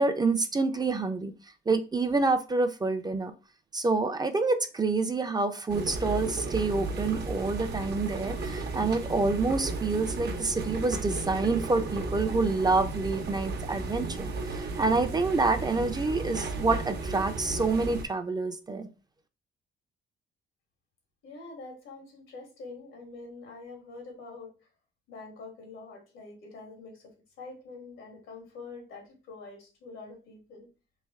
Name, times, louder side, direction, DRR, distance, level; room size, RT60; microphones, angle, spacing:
voice 1, 0.0-1.3 1.7-3.3 3.7-18.9, right 3 dB, 20° right, 8 dB, 0.4 m, -27 dB
sound 1, 5.7-18.0, right 3 dB, 55° right, 0.7 m, -34 dB
voice 2, 21.2-24.5 25.1-27.1 27.4-30.7, left 3 dB, 90° left, 2 dB, 1.5 m, -45 dB
3.2 x 2.6 x 3.5 m, 0.32 s
cardioid pair, 90°, 20 cm